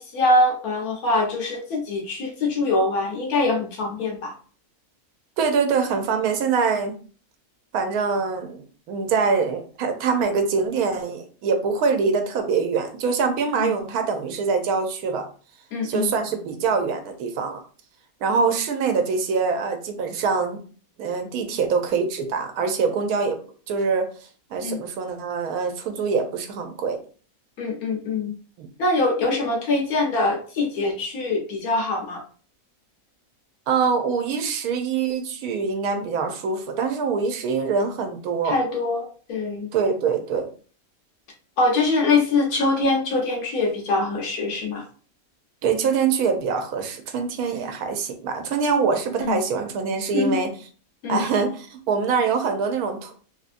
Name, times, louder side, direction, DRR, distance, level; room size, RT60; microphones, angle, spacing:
voice 1, 0.0-4.3 13.6-13.7 15.7-16.1 24.6-24.8 27.6-28.3 28.8-32.2 38.4-39.7 41.6-44.8 49.2-49.4 50.1-50.4 51.0-51.2, left 2 dB, 80° left, 0 dB, 1.3 m, -23 dB
voice 2, 5.4-6.9 7.7-15.3 15.8-17.6 18.2-20.6 21.0-23.4 23.7-24.1 24.5-27.0 28.6-28.7 33.7-38.6 39.7-40.5 45.6-50.5 51.1-53.1, right 5 dB, 85° right, 5 dB, 1.1 m, -24 dB
3.3 x 2.5 x 2.5 m, 0.40 s
omnidirectional pair, 1.5 m